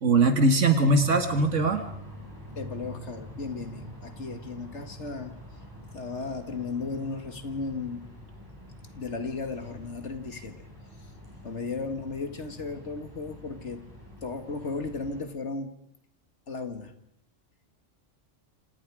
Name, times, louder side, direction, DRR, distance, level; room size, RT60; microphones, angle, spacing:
voice 1, 0.0-1.8, right 2 dB, 75° right, 7 dB, 2.0 m, -21 dB
sound 1, 1.0-15.2, equal, 15° right, 6.9 m, -45 dB
voice 2, 2.6-5.4 5.9-8.0 8.9-10.7 11.4-13.8 14.2-15.8 16.5-16.9, left 4 dB, 65° left, 8 dB, 2.4 m, -35 dB
27.5 x 26.5 x 4.9 m, 0.73 s
omnidirectional pair, 1.3 m